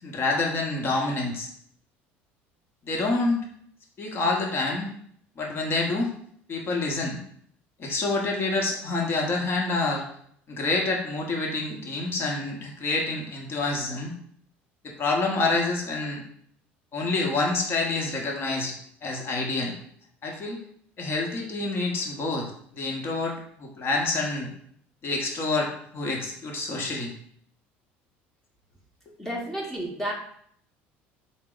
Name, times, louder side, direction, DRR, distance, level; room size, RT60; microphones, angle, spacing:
voice 1, 0.0-1.5 2.8-3.4 4.0-4.9 5.4-6.1 6.5-7.2 7.8-10.0 10.5-14.1 14.8-16.2 16.9-18.7 19.0-19.7 20.2-20.6 21.0-24.5 25.0-27.1, left 3 dB, 40° left, 0 dB, 1.1 m, -27 dB
voice 2, 29.2-30.1, right 1 dB, 10° left, -3 dB, 1.0 m, -31 dB
3.9 x 2.1 x 3.8 m, 0.64 s
supercardioid pair, 90°, 6 cm